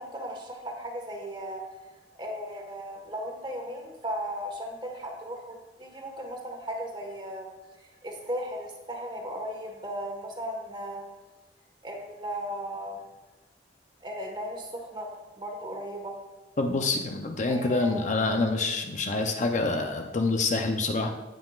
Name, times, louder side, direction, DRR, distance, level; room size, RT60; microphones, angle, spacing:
voice 1, 0.0-1.6 2.2-7.5 8.0-11.1 11.8-13.0 14.0-16.1 17.4-18.0, equal, 25° right, 1 dB, 1.4 m, -36 dB
voice 2, 16.6-21.1, left 3 dB, 40° left, 4 dB, 0.6 m, -26 dB
16.5 x 5.8 x 2.4 m, 1.1 s
head